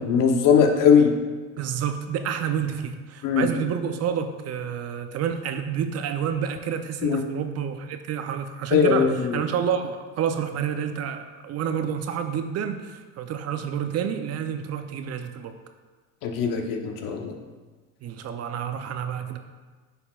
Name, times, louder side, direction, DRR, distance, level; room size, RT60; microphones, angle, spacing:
voice 1, 0.1-1.2 3.2-3.5 7.0-7.2 8.7-9.3 16.2-17.3, left 6 dB, 60° left, 4 dB, 0.9 m, -20 dB
voice 2, 1.6-15.5 18.0-19.4, right 8 dB, 40° right, 8 dB, 0.5 m, -29 dB
9.9 x 4.2 x 2.3 m, 1.4 s
supercardioid pair, 95°, 37 cm